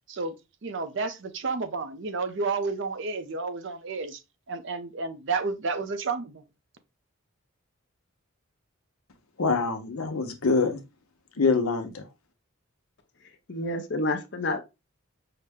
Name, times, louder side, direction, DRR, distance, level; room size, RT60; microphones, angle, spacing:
voice 1, 0.6-4.2 4.5-6.4, right 4 dB, 60° right, 0.6 m, -31 dB
voice 2, 9.4-10.8 11.4-12.0, left 4 dB, 85° left, 0.9 m, -25 dB
voice 3, 13.5-14.6, left 2 dB, 55° left, 0.7 m, -29 dB
5.7 x 2.1 x 3.5 m
head